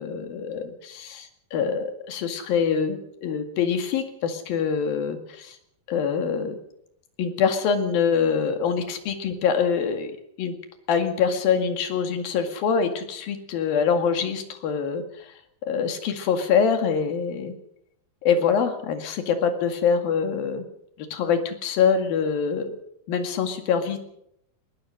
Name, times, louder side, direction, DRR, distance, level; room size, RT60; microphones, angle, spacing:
voice 1, 0.0-5.6 5.9-6.6 7.2-10.1 10.4-10.6 10.9-15.3 15.7-17.5 18.2-20.6 21.0-22.8 23.1-24.0, left 6 dB, 70° left, 6 dB, 3.8 m, -24 dB
21.0 x 20.0 x 6.4 m, 0.75 s
omnidirectional pair, 4.4 m